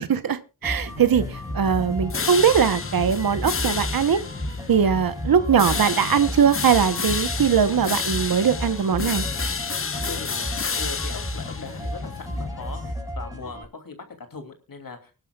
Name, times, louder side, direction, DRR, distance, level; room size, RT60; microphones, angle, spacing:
voice 1, 0.0-4.2 4.7-9.2, right 7 dB, 75° right, 1.0 m, -21 dB
sound 1, 0.6-12.9, left 5 dB, 35° left, 0.8 m, -31 dB
sound 2, 0.6-13.6, equal, 10° right, 6.3 m, -34 dB
voice 2, 9.6-15.2, left 4 dB, 70° left, 2.8 m, -40 dB
24.5 x 12.0 x 2.4 m
cardioid pair, 45°, 36 cm